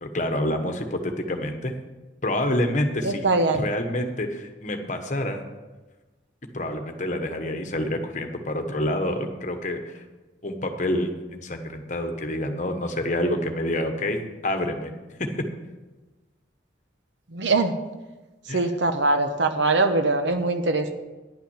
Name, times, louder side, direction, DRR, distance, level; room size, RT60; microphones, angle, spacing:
voice 1, 0.0-1.7 2.2-3.3 3.5-5.4 6.5-10.0 10.4-14.9 18.5-18.7, left 1 dB, 40° left, 6 dB, 1.2 m, -27 dB
voice 2, 3.0-3.6 17.3-17.7 18.5-20.9, right 3 dB, 75° right, 7 dB, 0.9 m, -22 dB
10.5 x 5.8 x 8.8 m, 1.1 s
head